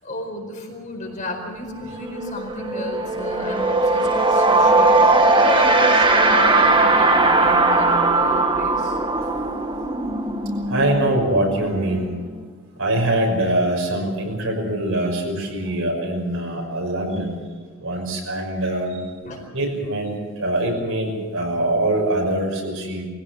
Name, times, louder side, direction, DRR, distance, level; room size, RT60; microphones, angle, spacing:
voice 1, 0.0-9.0 15.6-15.7 19.2-19.4, left 1 dB, 35° left, 1 dB, 4.6 m, -32 dB
sound 1, 1.4-1.5 1.8-12.4, right 2 dB, 20° right, 1.4 m, -19 dB
voice 2, 10.7-12.1 12.8-17.4 17.8-19.0 19.5-23.1, right 1 dB, 70° right, 1 dB, 6.0 m, -23 dB
23.0 x 16.5 x 7.8 m, 1.5 s
head